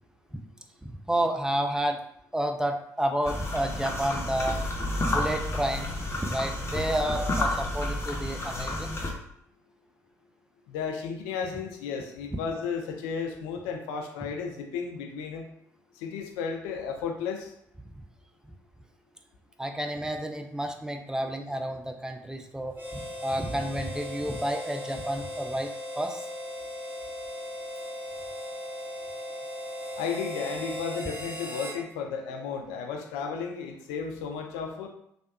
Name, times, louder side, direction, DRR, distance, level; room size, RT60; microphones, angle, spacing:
voice 1, 0.8-2.0 2.3-4.6 5.0-8.9 19.6-26.3, right 1 dB, 5° right, 4 dB, 0.4 m, -30 dB
sound 1, 3.3-9.1, left 1 dB, 30° left, 0.7 m, -30 dB
voice 2, 10.7-15.5 15.9-17.5 30.0-34.9, left 6 dB, 70° left, 4 dB, 0.4 m, -34 dB
Harmonica, 22.7-31.8, equal, 20° right, 0.8 m, -37 dB
3.3 x 2.1 x 2.7 m, 0.74 s
figure-of-eight pair, 45°, 9 cm